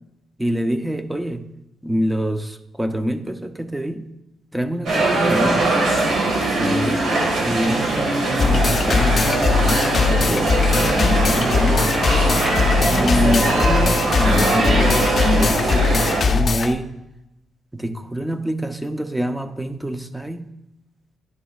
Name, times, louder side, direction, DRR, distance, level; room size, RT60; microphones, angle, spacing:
voice 1, 0.4-1.5 1.8-4.1 4.5-5.8 6.2-7.1 7.4-12.4 12.9-17.0 17.7-20.5, right 1 dB, 5° right, 9 dB, 0.5 m, -26 dB
sound 1, 4.9-16.2, right 2 dB, 65° right, 1.6 m, -21 dB
sound 2, 8.4-16.7, left 4 dB, 40° left, 0.5 m, -20 dB
10.5 x 6.0 x 2.4 m, 0.90 s
cardioid pair, 125°, 0 cm